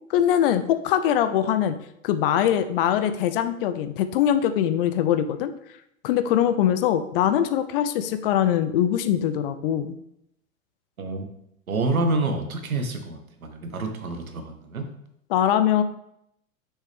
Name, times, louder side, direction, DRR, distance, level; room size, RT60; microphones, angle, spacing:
voice 1, 0.1-1.7 2.0-5.5 6.0-9.9 15.3-15.8, left 10 dB, 40° left, 11 dB, 0.6 m, -22 dB
voice 2, 11.7-14.9, right 2 dB, 80° right, 6 dB, 1.3 m, -27 dB
6.4 x 6.1 x 3.5 m, 0.77 s
figure-of-eight pair, 100°, 42 cm